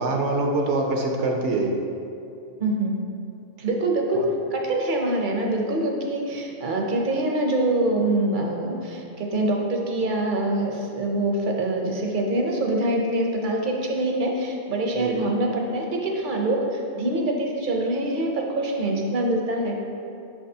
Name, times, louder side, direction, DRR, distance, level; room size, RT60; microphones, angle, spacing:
voice 1, 0.0-1.7 4.1-4.3 15.0-15.3, right 2 dB, 75° right, 2 dB, 0.9 m, -24 dB
voice 2, 2.6-3.0 3.6-19.8, right 1 dB, 50° right, 1 dB, 0.7 m, -25 dB
5.9 x 5.9 x 2.7 m, 2.6 s
omnidirectional pair, 1.3 m